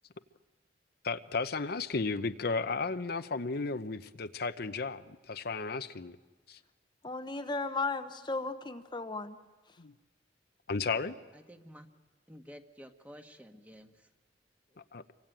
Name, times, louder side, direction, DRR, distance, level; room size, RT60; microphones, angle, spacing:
voice 1, 1.0-6.2 6.5-6.6 9.8-9.9 10.7-11.1 14.9-15.0, left 4 dB, 60° left, 10 dB, 0.8 m, -34 dB
voice 2, 7.0-9.4, left 3 dB, 25° left, 8 dB, 0.9 m, -35 dB
voice 3, 11.3-11.9 12.3-14.1, equal, 10° right, 6 dB, 1.5 m, -51 dB
27.0 x 24.0 x 9.1 m, 1.2 s
head